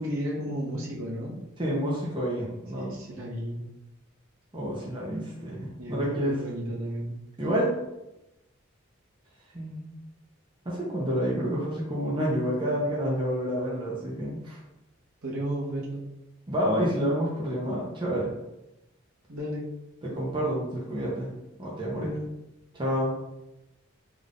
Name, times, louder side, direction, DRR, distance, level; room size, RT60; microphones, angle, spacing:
voice 1, 0.0-1.4 2.7-3.6 5.8-7.2 15.2-16.1 19.3-19.7 22.0-22.3, equal, 80° right, -6 dB, 1.3 m, -33 dB
voice 2, 1.6-3.0 4.5-6.4 7.4-7.7 9.5-9.9 10.6-14.6 16.5-18.3 20.0-21.3 21.6-22.1 22.7-23.2, equal, 20° right, -5 dB, 0.7 m, -29 dB
3.7 x 2.5 x 3.6 m, 0.93 s
head